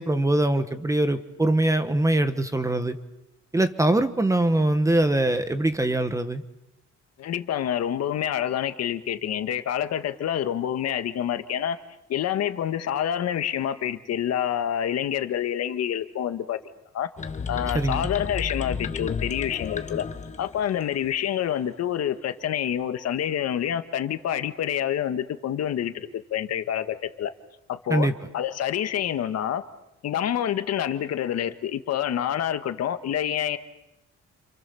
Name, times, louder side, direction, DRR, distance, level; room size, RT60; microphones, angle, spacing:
voice 1, 0.0-3.0 3.5-6.4 17.7-18.1 27.9-28.1, right 1 dB, 10° right, 10 dB, 1.1 m, -23 dB
voice 2, 7.2-11.8 12.1-16.6 16.9-17.1 17.5-20.0 20.4-27.3 27.7-28.1 28.3-29.6 30.0-33.6, left 10 dB, 55° left, 9 dB, 1.6 m, -27 dB
sound 1, 17.2-21.1, left 5 dB, 25° left, 1.3 m, -32 dB
30.0 x 28.0 x 7.1 m, 0.92 s
cardioid pair, 180°, 30 cm